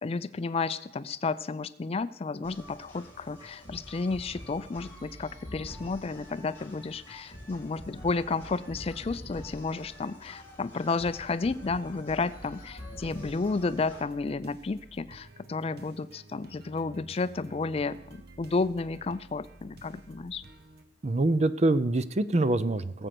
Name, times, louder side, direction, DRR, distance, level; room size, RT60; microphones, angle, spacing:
voice 1, 0.0-20.4, left 3 dB, 30° left, 15 dB, 0.4 m, -32 dB
sound 1, 2.4-14.0, equal, 10° left, 2.9 m, -46 dB
sound 2, 12.3-20.8, right 2 dB, 55° right, 1.3 m, -52 dB
voice 2, 21.0-23.1, right 2 dB, 35° right, 14 dB, 0.5 m, -25 dB
19.0 x 7.8 x 6.0 m, 0.90 s
head